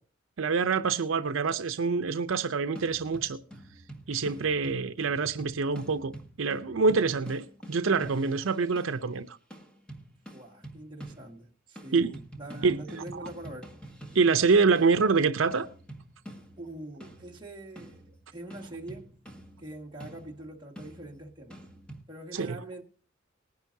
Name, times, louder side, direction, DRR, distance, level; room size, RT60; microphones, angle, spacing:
voice 1, 0.4-3.4 4.1-6.1 6.4-9.4 11.9-12.2 12.6-13.3 14.1-15.7 22.3-22.6, right 4 dB, 80° right, 0.6 m, -26 dB
sound 1, 2.8-9.1 9.5-11.5 11.8-22.0, right 1 dB, 5° left, 1.7 m, -48 dB
voice 2, 10.3-13.8 16.6-19.2 19.6-21.6 22.1-22.8, right 1 dB, 25° right, 1.8 m, -44 dB
20.0 x 10.5 x 2.7 m
head